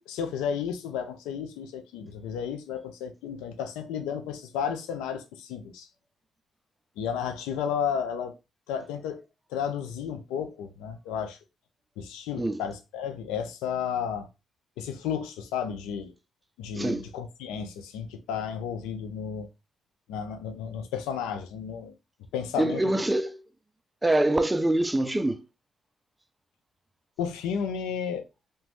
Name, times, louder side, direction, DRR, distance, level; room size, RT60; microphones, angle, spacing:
voice 1, 0.0-5.9 7.0-8.3 8.7-9.2 9.5-11.4 12.0-14.3 14.8-16.1 16.6-19.5 20.1-21.9 22.3-22.9 27.2-28.2, left 7 dB, 85° left, 0.4 m, -32 dB
voice 2, 22.6-23.4 24.0-25.4, right 1 dB, 15° right, 0.4 m, -25 dB
2.9 x 2.2 x 2.9 m
supercardioid pair, 55°, 0 cm